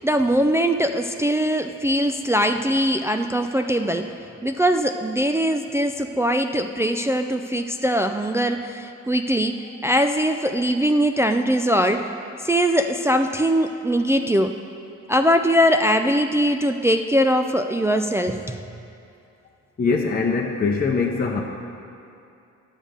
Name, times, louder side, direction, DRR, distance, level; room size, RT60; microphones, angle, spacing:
voice 1, 0.0-4.1 4.4-12.1 12.4-14.6 15.1-18.6, equal, 10° right, 5 dB, 0.3 m, -21 dB
voice 2, 19.8-21.4, left 4 dB, 30° left, 0 dB, 0.8 m, -22 dB
11.0 x 6.5 x 5.1 m, 2.6 s
cardioid pair, 90°, 30 cm